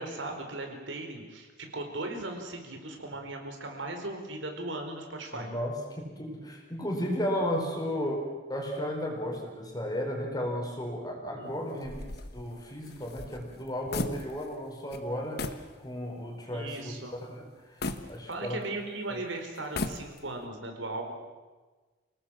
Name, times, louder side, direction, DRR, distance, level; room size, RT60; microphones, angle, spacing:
voice 1, 0.0-5.5 11.4-11.5 16.5-17.1 18.3-21.1, right 2 dB, 80° right, 4 dB, 4.5 m, -37 dB
voice 2, 5.3-12.1 12.3-17.8 18.1-18.6 19.1-19.2, equal, 20° left, 1 dB, 4.9 m, -34 dB
sound 1, 11.8-14.6 14.9-15.0 15.4-15.7 16.2-16.3 17.8-18.8 19.6-20.4, left 2 dB, 55° left, 1.4 m, -36 dB
28.0 x 18.5 x 7.5 m, 1.3 s
head